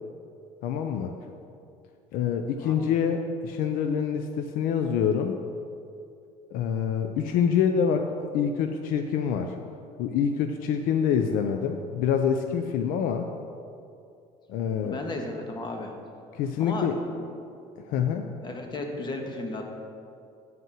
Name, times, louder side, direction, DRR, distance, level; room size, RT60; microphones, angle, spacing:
voice 1, 0.6-1.1 2.1-5.4 6.5-8.1 8.3-9.5 10.0-13.3 14.5-15.0 16.3-17.0 17.9-18.3, left 7 dB, 75° left, 6 dB, 0.6 m, -26 dB
voice 2, 14.8-15.9 16.6-16.9 17.2-17.3 18.4-19.7, left 2 dB, 30° left, 2 dB, 1.6 m, -34 dB
9.2 x 5.6 x 7.4 m, 2.5 s
supercardioid pair, 100°, 15 cm